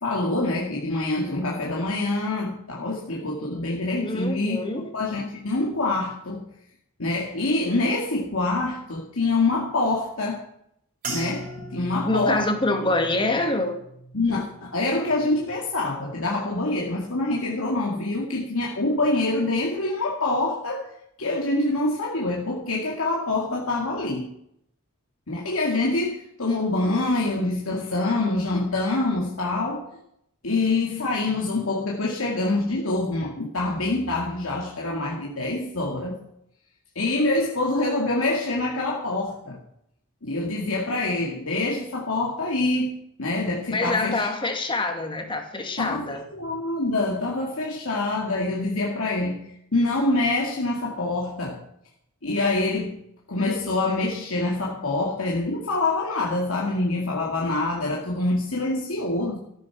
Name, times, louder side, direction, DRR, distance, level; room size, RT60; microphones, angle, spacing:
voice 1, 0.0-6.5 7.0-10.4 11.0-12.5 14.1-20.9 21.2-24.3 25.3-29.9 30.4-36.2 37.0-39.6 40.2-44.3 45.8-51.6 52.2-53.0 53.3-59.4, left 2 dB, 65° left, 2.3 m, -25 dB
voice 2, 4.0-4.9 12.1-13.8 43.7-46.2, left 2 dB, 20° left, 2.1 m, -25 dB
sound 1, 11.0-15.6 15.9-16.5 17.1-17.4, right 2 dB, 40° right, 5.1 m, -40 dB
14.0 x 11.0 x 6.1 m
head